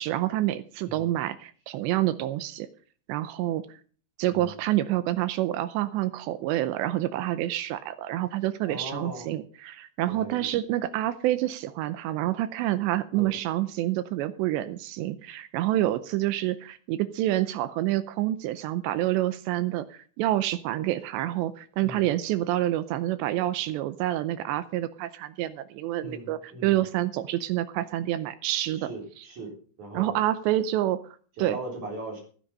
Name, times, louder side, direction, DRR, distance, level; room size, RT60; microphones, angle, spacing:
voice 1, 0.0-2.7 3.1-3.6 4.2-28.9 29.9-31.0 31.4-31.6, right 14 dB, 80° right, 13 dB, 2.7 m, -28 dB
voice 2, 8.7-9.3 10.1-10.4 13.1-13.4 21.8-22.1 26.0-26.8 28.7-29.5 29.8-30.2 31.4-32.2, right 2 dB, 40° right, 0 dB, 5.0 m, -39 dB
15.5 x 9.9 x 5.4 m, 0.43 s
omnidirectional pair, 5.5 m